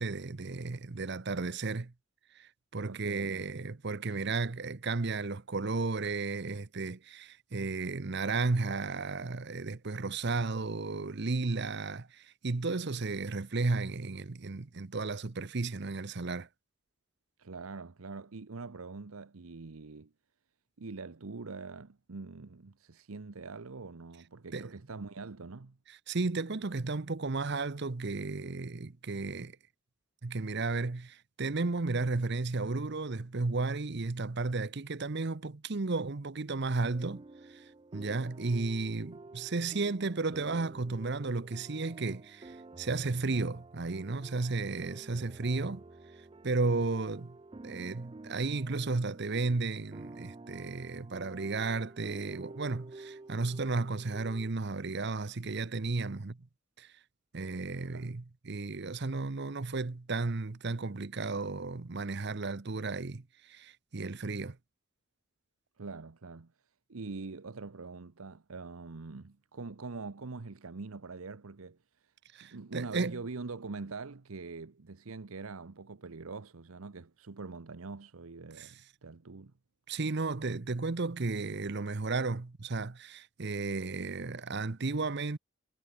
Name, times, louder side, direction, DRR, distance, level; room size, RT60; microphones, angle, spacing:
voice 1, 0.0-1.9 2.3-16.5 24.5-24.7 25.9-29.6 30.2-45.8 46.4-47.4 47.6-56.5 56.8-56.9 57.3-64.6 72.3-73.2 78.6-78.7 79.9-85.4, right 3 dB, 55° right, 0.8 m, -34 dB
voice 2, 2.8-3.5 17.4-20.1 20.8-25.8 57.8-58.1 65.8-66.5 66.9-72.1 72.4-79.5, right 4 dB, 80° right, 0.9 m, -44 dB
sound 1, 36.8-54.5, right 2 dB, 25° right, 0.4 m, -50 dB
head